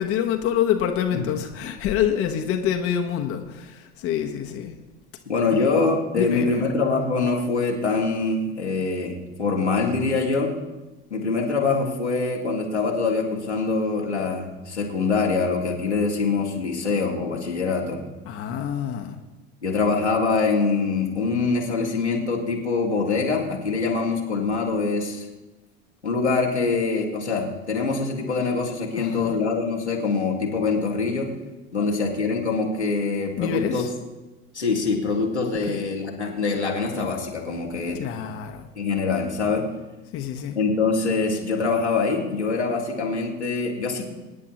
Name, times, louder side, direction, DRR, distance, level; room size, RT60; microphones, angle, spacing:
voice 1, 0.0-4.7 5.5-5.8 6.1-6.6 18.2-19.2 29.0-29.4 31.8-31.9 33.4-33.9 35.6-35.8 37.9-38.7 40.1-40.6, left 9 dB, 45° left, 4 dB, 1.2 m, -27 dB
voice 2, 5.3-10.5 11.1-18.0 19.6-25.3 26.0-31.3 31.7-33.8 34.5-38.0 38.8-39.7 40.5-44.0, left 4 dB, 85° left, -1 dB, 2.0 m, -24 dB
24.0 x 9.8 x 3.0 m, 1.1 s
figure-of-eight pair, 70°, 33 cm